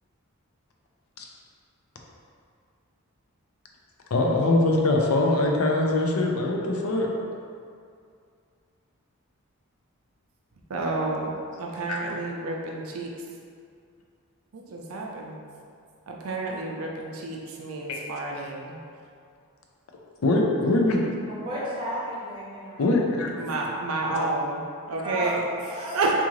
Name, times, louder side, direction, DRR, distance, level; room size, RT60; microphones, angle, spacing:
voice 1, 4.1-7.1 11.9-12.0 17.9-18.0 20.2-21.0 22.8-23.3 24.1-24.3, left 2 dB, 75° left, 0 dB, 0.5 m, -22 dB
voice 2, 10.7-13.1 14.5-15.4 16.1-18.8 23.4-25.4 25.7-26.1, right 2 dB, 70° right, -1 dB, 0.5 m, -30 dB
voice 3, 21.3-22.9 25.0-26.0, right 1 dB, 20° right, -9 dB, 0.9 m, -33 dB
3.6 x 2.5 x 3.1 m, 2.3 s
head